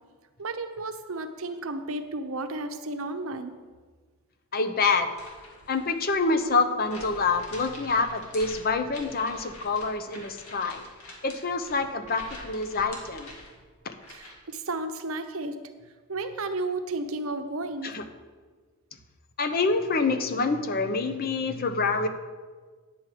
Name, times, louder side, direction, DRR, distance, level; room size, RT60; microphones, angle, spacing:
voice 1, 0.4-3.6 14.1-15.6 16.1-18.0, right 2 dB, 70° right, 8 dB, 0.8 m, -33 dB
voice 2, 4.5-5.1 5.7-10.8 11.2-13.3 13.8-13.9 17.8-18.0 19.4-22.1, left 4 dB, 45° left, 8 dB, 0.7 m, -26 dB
sound 1, 5.0-14.5, left 2 dB, 85° left, 2.1 m, -46 dB
9.9 x 7.6 x 4.9 m, 1.4 s
head